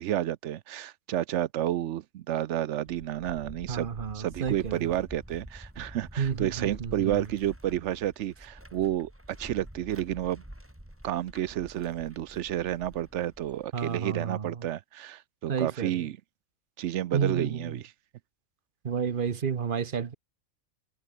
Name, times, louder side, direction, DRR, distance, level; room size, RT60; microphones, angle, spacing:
voice 1, 0.0-3.9 4.1-10.4 11.0-16.2 16.8-17.9, right 12 dB, 65° right, 0.8 m, -31 dB
sound 1, 2.9-13.7, equal, 10° right, 4.0 m, -47 dB
voice 2, 3.7-5.0 6.2-7.2 13.7-14.6 15.5-16.0 17.1-17.8 18.8-20.1, right 6 dB, 45° right, 1.0 m, -31 dB
omnidirectional pair, 1.4 m